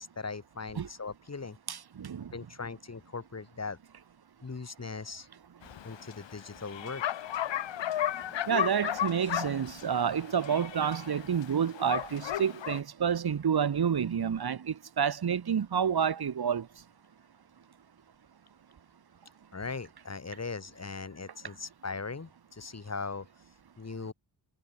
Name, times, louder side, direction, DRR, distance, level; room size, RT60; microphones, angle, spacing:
voice 1, 0.0-1.6 2.3-3.8 4.4-5.3 5.8-7.2 8.2-8.3 19.5-23.3 23.8-24.1, left 4 dB, 35° left, 4.7 m, -39 dB
voice 2, 1.7-2.3 8.5-16.7, right 7 dB, 60° right, 1.6 m, -29 dB
Bark, 5.6-12.8, left 11 dB, 80° left, 0.9 m, -35 dB
wide cardioid pair, 125°, 44 cm